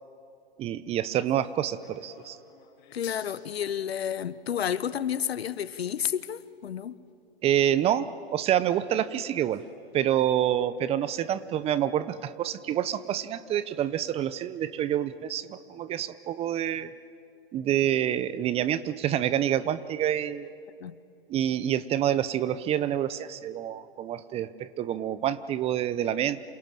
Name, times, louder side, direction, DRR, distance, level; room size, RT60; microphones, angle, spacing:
voice 1, 0.6-2.4 7.4-9.6 9.9-16.9 17.5-20.5 21.3-26.4, right 11 dB, 20° right, 0.7 m, -27 dB
sound 1, 1.2-7.1 7.6-7.7 8.1-8.2 8.9-10.0 10.3-10.4 10.7-10.8 11.4-11.5 11.7-11.8, left 9 dB, 40° left, 6.2 m, -55 dB
voice 2, 2.9-6.9 20.8-21.0, left 9 dB, 80° left, 1.2 m, -31 dB
28.0 x 27.5 x 7.7 m
hypercardioid pair, 130°, 31 cm